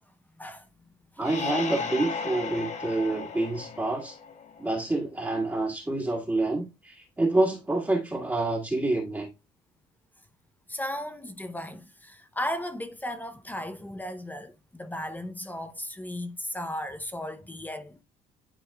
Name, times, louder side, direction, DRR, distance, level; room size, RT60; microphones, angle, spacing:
sound 1, 1.2-4.8, left 5 dB, 45° left, 1.2 m, -35 dB
voice 1, 1.2-4.2 4.6-9.3, right 2 dB, 10° right, 1.7 m, -27 dB
voice 2, 10.7-18.0, left 1 dB, 10° left, 0.7 m, -35 dB
11.0 x 4.1 x 2.3 m
cardioid pair, 110°, 17 cm